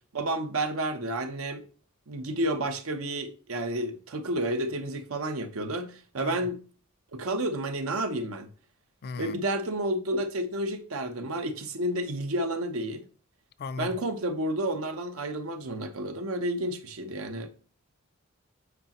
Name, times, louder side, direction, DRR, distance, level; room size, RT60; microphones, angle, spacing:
voice 1, 0.1-1.6 2.1-6.6 7.1-8.5 9.2-13.1 13.8-17.5, right 1 dB, 90° right, 0.9 m, -31 dB
voice 2, 6.2-6.5 9.0-9.5 13.6-13.9, left 4 dB, 50° left, 0.4 m, -37 dB
8.1 x 4.9 x 3.0 m
head